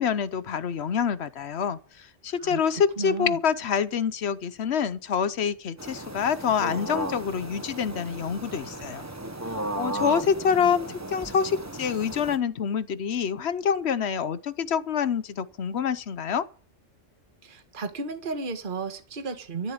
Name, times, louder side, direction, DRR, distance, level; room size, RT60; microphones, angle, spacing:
voice 1, 0.0-9.1 9.5-16.5, left 7 dB, 65° left, 1.0 m, -26 dB
voice 2, 2.4-3.4 17.4-19.7, right 4 dB, 45° right, 1.6 m, -34 dB
sound 1, 5.8-12.4, right 1 dB, 15° right, 1.1 m, -35 dB
13.5 x 7.2 x 9.6 m
omnidirectional pair, 1.2 m